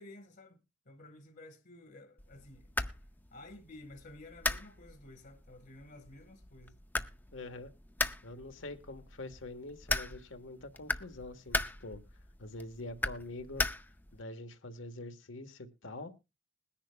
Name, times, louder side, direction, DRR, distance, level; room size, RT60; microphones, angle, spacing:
voice 1, 0.0-2.7 3.3-6.8, left 2 dB, 55° left, 1.5 m, -53 dB
sound 1, 2.2-14.2, left 2 dB, 10° left, 0.5 m, -39 dB
voice 2, 7.3-7.7 8.2-12.0 12.4-13.7 14.1-16.1, left 2 dB, 75° left, 1.3 m, -45 dB
21.0 x 10.0 x 2.2 m
head